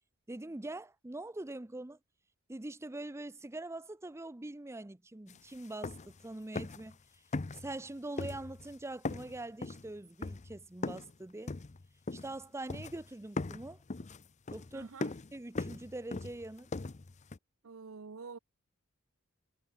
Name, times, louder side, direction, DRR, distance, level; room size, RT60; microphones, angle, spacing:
voice 1, 0.3-2.0 2.5-6.0 6.2-7.0 7.6-11.5 12.1-13.8 14.5-14.9 15.3-16.7, right 2 dB, 15° right, 0.6 m, -43 dB
Footsteps Wood Indoor Soft, 5.3-5.4 5.6-6.2 6.5-6.9 7.3-7.9 8.2-8.7 9.0-11.1 11.5-12.4 12.7-13.1 13.4-17.4, left 3 dB, 35° left, 0.6 m, -39 dB
voice 2, 14.7-15.1 17.6-18.4, right 4 dB, 70° right, 0.7 m, -47 dB
head